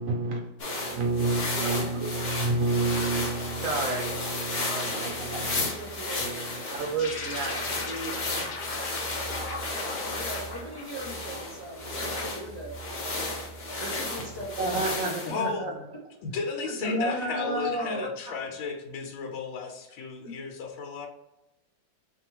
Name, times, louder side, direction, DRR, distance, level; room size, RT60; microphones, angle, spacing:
voice 1, 0.0-5.7 6.2-8.8 14.6-15.7 16.8-18.1, right 2 dB, 75° right, 1 dB, 0.7 m, -30 dB
sound 1, 0.6-15.4, left 2 dB, 45° left, 0.8 m, -33 dB
voice 2, 4.7-6.7 7.4-7.7 9.3-12.8 13.8-14.8 16.6-17.1 17.8-17.9 20.2-20.3, right 1 dB, 25° right, -3 dB, 0.5 m, -41 dB
sound 2, 7.0-11.7, left 4 dB, 60° left, 1.3 m, -38 dB
voice 3, 15.2-15.8 16.2-21.1, left 4 dB, 90° left, 3 dB, 1.6 m, -34 dB
5.2 x 2.6 x 2.9 m, 0.93 s
omnidirectional pair, 2.2 m